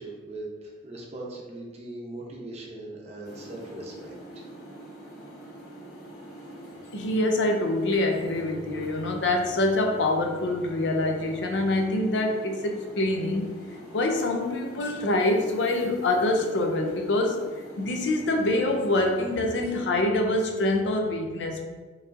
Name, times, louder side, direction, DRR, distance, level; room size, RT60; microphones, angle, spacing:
voice 1, 0.0-4.4, right 2 dB, 35° right, -2 dB, 0.6 m, -40 dB
sound 1, 3.2-19.8, right 1 dB, 50° left, 1.1 m, -44 dB
voice 2, 6.9-13.5 13.9-17.4 17.8-21.7, left 2 dB, 70° left, 3 dB, 0.5 m, -25 dB
4.6 x 2.6 x 2.4 m, 1.4 s
head